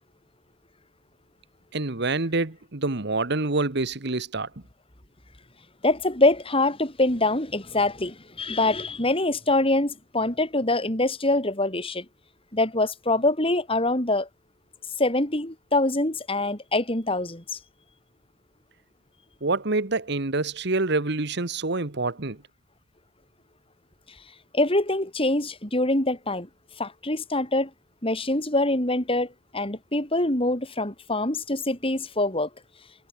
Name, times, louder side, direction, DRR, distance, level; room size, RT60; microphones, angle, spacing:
voice 1, 1.7-4.5 19.4-22.4, right 3 dB, 60° right, 1.5 m, -26 dB
voice 2, 5.8-12.1 12.5-14.3 15.0-17.6 24.5-26.5 26.8-27.7 28.0-32.5, left 2 dB, 30° left, 5.3 m, -24 dB
head